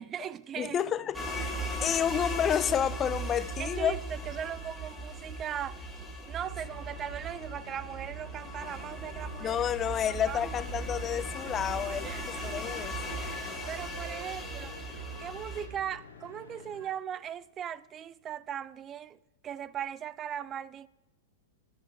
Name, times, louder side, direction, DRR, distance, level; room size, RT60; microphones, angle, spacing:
voice 1, 0.0-0.8 1.6-1.8 3.6-5.8 6.3-9.6 10.1-10.5 12.0-14.8 15.2-19.2 19.4-20.9, right 9 dB, 30° right, 0.3 m, -39 dB
voice 2, 0.6-1.5 1.8-4.0 9.4-13.0, left 9 dB, 25° left, 0.5 m, -30 dB
sound 1, 1.1-15.7, right 1 dB, 5° left, 2.2 m, -38 dB
sound 2, 6.3-17.0, left 6 dB, 80° left, 1.1 m, -52 dB
Wind instrument woodwind instrument, 8.6-16.6, right 6 dB, 75° right, 1.6 m, -54 dB
16.0 x 10.0 x 4.5 m
hypercardioid pair, 120°, 0 cm